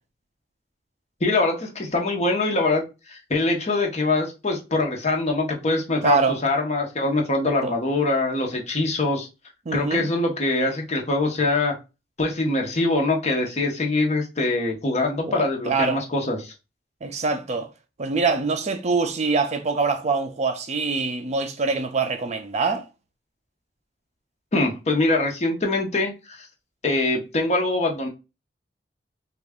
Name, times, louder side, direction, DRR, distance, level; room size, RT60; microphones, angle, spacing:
voice 1, 1.2-9.3 9.7-11.7 12.2-16.5 24.5-26.4 26.8-28.1, left 2 dB, 40° left, 0.8 m, -23 dB
voice 2, 6.0-6.4 7.6-7.7 9.7-10.0 15.3-16.0 17.0-17.7 18.0-22.9, right 4 dB, 40° right, 0.4 m, -24 dB
3.2 x 2.4 x 3.5 m
head